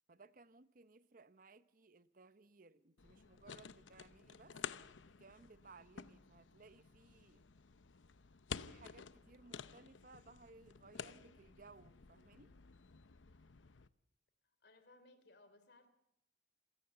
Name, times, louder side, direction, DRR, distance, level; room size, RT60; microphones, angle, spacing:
voice 1, 0.1-4.6 5.2-7.5 8.7-12.6, right 3 dB, 45° right, 0.8 m, -62 dB
sound 1, 3.0-13.9, left 6 dB, 85° left, 0.8 m, -52 dB
voice 2, 14.4-15.9, left 2 dB, 60° left, 3.1 m, -64 dB
27.0 x 17.0 x 6.9 m
head